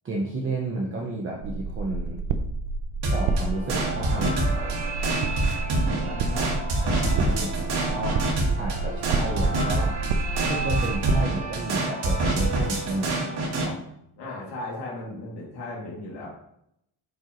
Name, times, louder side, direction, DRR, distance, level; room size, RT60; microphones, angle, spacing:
voice 1, 0.0-2.2 3.1-5.1 5.9-6.4 6.8-8.2 8.6-10.0 10.4-13.8, right 2 dB, 30° right, -1 dB, 1.0 m, -32 dB
sound 1, 1.4-11.2, right 3 dB, 85° right, 0.9 m, -30 dB
sound 2, 3.0-13.7, right 2 dB, 70° right, 2.2 m, -26 dB
voice 2, 5.8-6.5 6.8-7.3 14.2-16.3, left 2 dB, 75° left, -6 dB, 2.6 m, -36 dB
9.2 x 5.2 x 3.1 m, 0.77 s
cardioid pair, 165°, 42 cm